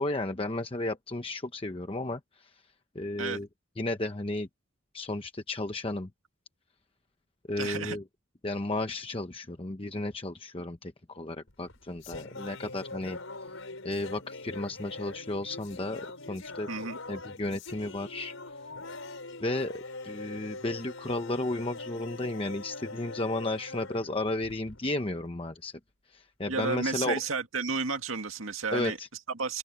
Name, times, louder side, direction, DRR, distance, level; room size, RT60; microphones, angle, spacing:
voice 1, 0.0-2.2 2.9-3.5 3.8-4.5 4.9-6.1 7.5-8.0 8.4-13.2 13.8-16.7 17.1-18.3 19.4-25.7 26.1-27.2 28.7-29.1, left 2 dB, 25° left, 0.9 m, -33 dB
voice 2, 7.6-8.0 16.7-17.0 26.5-29.0 29.3-29.6, right 4 dB, 85° right, 2.1 m, -32 dB
sound 1, 11.5-24.9, left 3 dB, 80° left, 4.7 m, -43 dB
open air
head